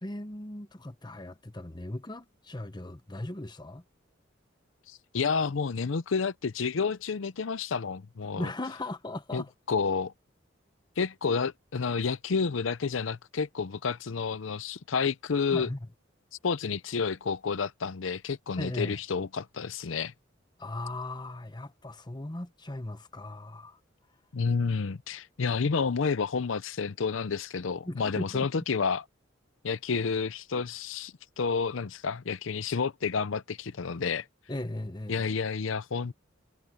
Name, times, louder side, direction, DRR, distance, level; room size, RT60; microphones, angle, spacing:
voice 1, 0.0-3.8 8.3-9.5 15.5-15.9 18.6-19.0 20.6-23.8 27.9-28.6 34.5-35.3, left 1 dB, 20° left, 1.0 m, -38 dB
voice 2, 4.9-8.5 9.3-10.1 11.0-15.7 16.4-20.1 24.3-29.0 29.6-34.3 35.1-36.1, left 5 dB, 80° left, 0.6 m, -30 dB
head